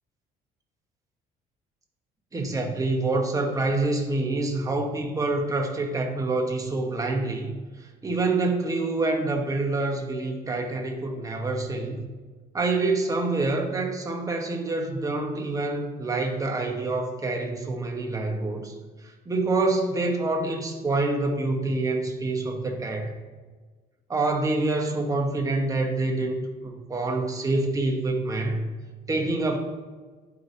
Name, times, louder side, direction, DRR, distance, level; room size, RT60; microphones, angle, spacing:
voice 1, 2.3-12.0 12.5-18.7 19.0-23.1 24.1-28.7 29.1-29.6, right 2 dB, 20° right, 2 dB, 1.1 m, -26 dB
11.0 x 4.8 x 2.7 m, 1.4 s
cardioid pair, 110°, 17 cm